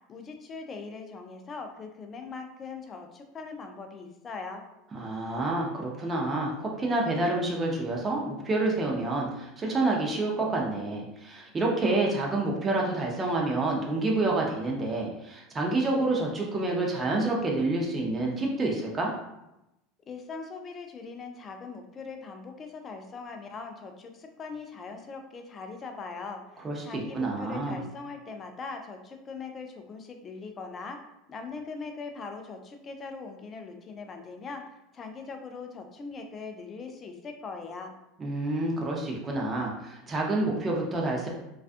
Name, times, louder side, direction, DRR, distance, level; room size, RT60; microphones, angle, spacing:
voice 1, 0.1-4.6 20.1-31.0 31.3-34.7 34.9-37.9, left 4 dB, 25° left, 5 dB, 0.3 m, -41 dB
voice 2, 4.9-19.1 26.6-27.8 38.2-41.3, right 2 dB, 20° right, -1 dB, 0.6 m, -28 dB
2.4 x 2.3 x 2.4 m, 0.89 s
supercardioid pair, 135°, 0 cm